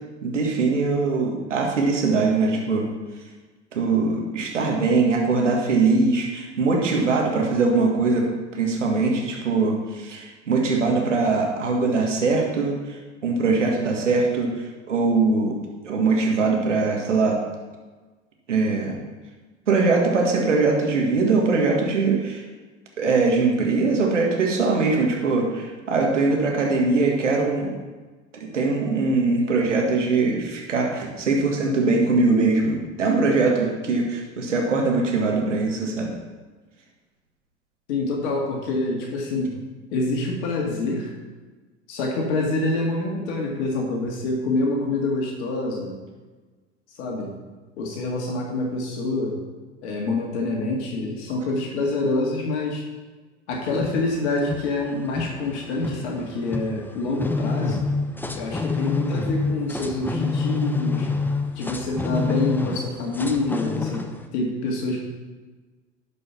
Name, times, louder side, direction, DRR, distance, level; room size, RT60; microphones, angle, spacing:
voice 1, 0.2-2.9 3.7-12.8 13.2-14.5 14.9-15.6 15.8-17.4 18.5-19.0 19.7-22.4 23.0-27.8 28.3-36.1, right 3 dB, 85° right, 0 dB, 1.8 m, -21 dB
voice 2, 37.9-39.6 39.9-41.1 41.9-46.0 46.9-47.4 47.8-49.4 49.8-52.9 53.5-57.9 58.4-61.1 61.6-64.1 64.3-65.0, left 2 dB, 65° left, -1 dB, 2.1 m, -26 dB
sound 1, 53.5-64.3, left 3 dB, 5° left, 0.7 m, -28 dB
11.5 x 5.4 x 5.8 m, 1.3 s
hypercardioid pair, 80°, 36 cm